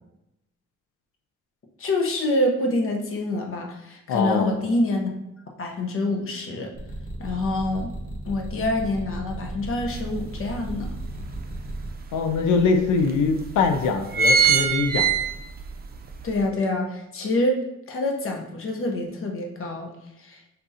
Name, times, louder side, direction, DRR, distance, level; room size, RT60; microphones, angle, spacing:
voice 1, 1.8-5.1 5.6-6.7 7.2-7.9 8.2-10.9 16.2-17.6 17.9-19.9 20.2-20.4, left 1 dB, 45° left, 1 dB, 1.0 m, -26 dB
voice 2, 4.1-4.5 12.1-15.1, left 4 dB, 85° left, 6 dB, 0.6 m, -23 dB
sound 1, 6.7-11.9, right 1 dB, 25° left, 1.4 m, -36 dB
sound 2, 9.9-10.0 10.5-11.7 12.3-12.4 12.6-12.7 13.4-13.6 13.9-15.7 16.1-16.2, right 5 dB, 30° right, 0.6 m, -21 dB
5.4 x 3.5 x 2.8 m, 0.86 s
cardioid pair, 90°, 30 cm